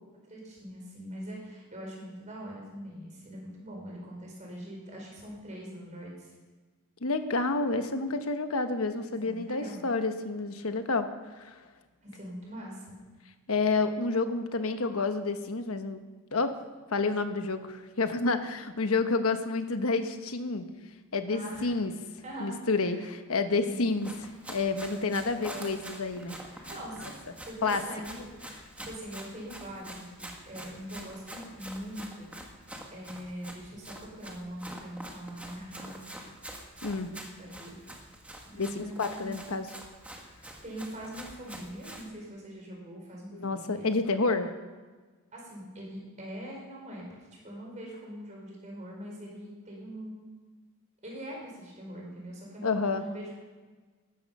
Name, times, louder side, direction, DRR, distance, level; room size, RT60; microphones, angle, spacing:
voice 1, 0.3-6.3 9.2-9.8 12.0-13.0 21.3-21.7 22.2-22.6 22.9-23.1 23.6-23.9 24.9-25.8 26.6-28.2 28.8-32.3 32.9-36.1 37.4-37.8 38.4-39.4 40.6-43.9 45.3-47.1 47.4-50.3 51.0-53.6, equal, 35° right, -2 dB, 4.6 m, -42 dB
voice 2, 7.0-11.1 11.3-11.6 13.5-16.0 16.3-16.5 16.9-20.7 21.1-21.9 22.4-24.1 24.5-26.4 27.6-27.8 36.8-37.1 38.5-39.7 43.3-44.5 52.6-53.0, left 3 dB, 70° left, 8 dB, 1.2 m, -29 dB
Run, 23.8-42.1, right 1 dB, 5° right, 1.6 m, -46 dB
15.0 x 13.0 x 5.5 m, 1.4 s
head